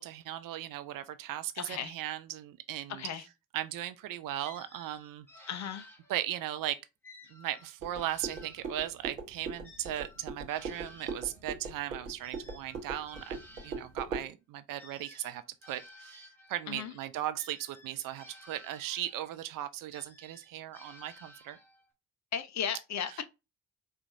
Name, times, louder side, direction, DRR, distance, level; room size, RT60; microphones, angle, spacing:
voice 1, 0.0-3.1 3.5-5.3 6.1-6.8 7.3-21.6 23.1-23.2, right 13 dB, 55° right, 0.5 m, -37 dB
voice 2, 1.6-1.9 2.9-3.2 5.5-5.9 16.7-16.9 22.3-23.2, left 8 dB, 40° left, 0.6 m, -35 dB
sound 1, 4.4-6.5 7.0-9.1 9.6-14.0 14.8-16.7 17.4-19.3 19.9-21.9, left 1 dB, 5° left, 1.2 m, -55 dB
sound 2, 7.8-14.3, right 4 dB, 85° right, 0.7 m, -41 dB
4.4 x 2.4 x 2.5 m
figure-of-eight pair, 40°, 41 cm